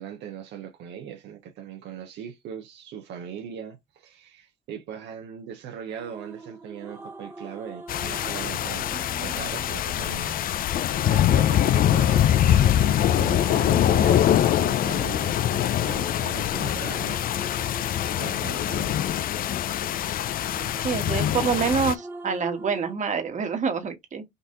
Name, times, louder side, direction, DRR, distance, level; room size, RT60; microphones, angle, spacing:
voice 1, 0.0-10.4 11.1-17.9 18.2-19.2, right 8 dB, 80° right, 1.0 m, -39 dB
sound 1, 5.9-23.0, right 2 dB, 10° right, 0.9 m, -43 dB
sound 2, 7.9-21.9, left 11 dB, 55° left, 0.4 m, -23 dB
voice 2, 20.8-24.2, right 6 dB, 45° right, 1.4 m, -26 dB
4.0 x 2.7 x 3.7 m
cardioid pair, 95°, 18 cm